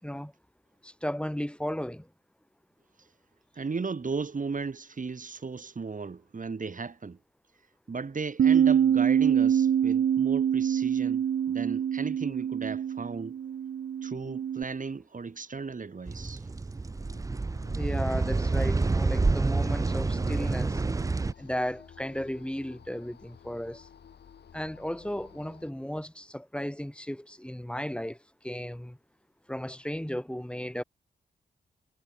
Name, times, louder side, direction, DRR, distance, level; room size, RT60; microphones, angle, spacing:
voice 1, 0.0-0.3 0.8-2.1 17.7-20.8 21.4-23.9 24.5-28.2 28.4-29.0 29.5-30.8, equal, 5° left, 5.3 m, -35 dB
voice 2, 3.6-7.2 7.9-13.4 14.0-16.5, right 4 dB, 50° right, 4.3 m, -35 dB
Bass guitar, 8.4-14.6, right 9 dB, 70° right, 1.0 m, -25 dB
sound 1, 16.1-21.3, right 3 dB, 20° right, 0.5 m, -28 dB
sound 2, 16.9-25.7, left 8 dB, 70° left, 3.3 m, -53 dB
supercardioid pair, 40°, 18 cm